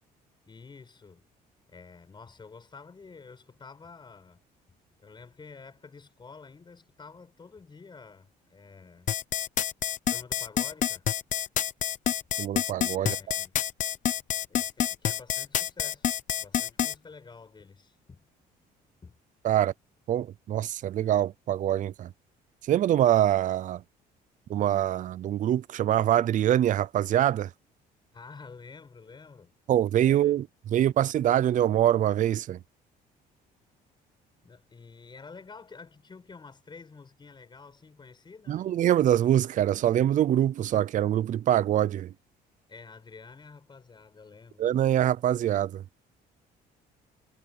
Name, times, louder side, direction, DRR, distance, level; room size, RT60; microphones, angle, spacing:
voice 1, 0.5-1.3 1.7-4.4 5.0-9.1 10.1-11.1 13.0-13.5 14.5-18.3 19.0-19.2 28.1-29.5 30.0-30.4 34.4-38.7 42.7-44.6, left 4 dB, 25° left, 7.5 m, -49 dB
sound 1, 9.1-16.9, left 10 dB, 50° left, 0.8 m, -27 dB
voice 2, 12.4-13.2 19.4-19.7 20.1-22.1 22.7-23.8 24.5-27.5 29.7-32.6 38.5-42.1 44.6-45.8, right 11 dB, 50° right, 0.6 m, -24 dB
cardioid pair, 110°, 17 cm